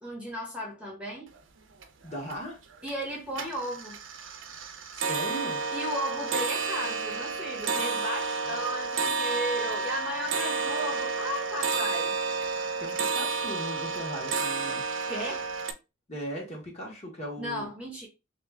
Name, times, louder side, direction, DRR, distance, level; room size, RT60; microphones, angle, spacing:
voice 1, 0.0-1.3 2.8-4.0 5.7-12.1 15.1-15.5 17.4-18.1, equal, 5° right, 1.0 m, -35 dB
sound 1, 1.3-1.4 1.7-2.3 2.7-3.1 3.3-15.7, right 4 dB, 75° right, 0.6 m, -31 dB
voice 2, 2.0-2.6 4.9-5.6 12.8-14.8 16.1-17.7, right 1 dB, 35° left, 1.6 m, -38 dB
3.5 x 3.0 x 3.4 m
head